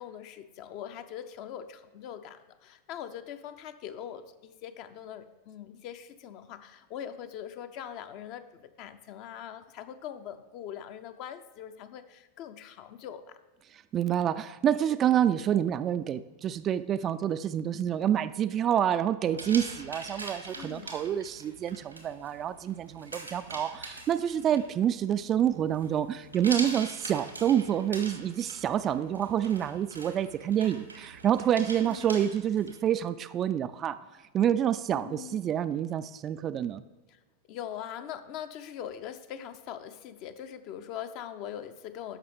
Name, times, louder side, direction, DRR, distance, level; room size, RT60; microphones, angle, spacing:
voice 1, 0.0-13.4 20.5-20.9 31.8-32.2 34.9-35.4 37.5-42.2, left 9 dB, 40° left, 10 dB, 0.6 m, -42 dB
voice 2, 13.9-34.0 34.3-36.8, right 10 dB, 30° right, 12 dB, 0.3 m, -28 dB
sound 1, 19.3-32.8, right 2 dB, 85° right, 1.3 m, -43 dB
13.0 x 5.4 x 3.4 m, 1.3 s
figure-of-eight pair, 90°, 0 cm